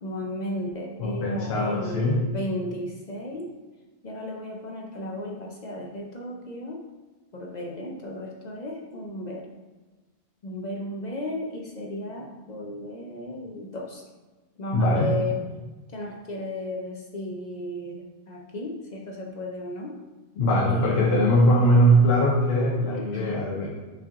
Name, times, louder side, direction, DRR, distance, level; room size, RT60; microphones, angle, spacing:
voice 1, 0.0-3.5 4.0-6.8 7.3-9.5 10.4-14.0 14.6-15.4 15.9-20.0 20.7-21.5 22.9-23.3, left 1 dB, 50° left, -1 dB, 0.6 m, -34 dB
voice 2, 1.0-2.2 14.7-15.2 20.4-23.7, equal, 70° left, -3 dB, 0.9 m, -21 dB
5.0 x 2.9 x 3.6 m, 1.2 s
omnidirectional pair, 1.1 m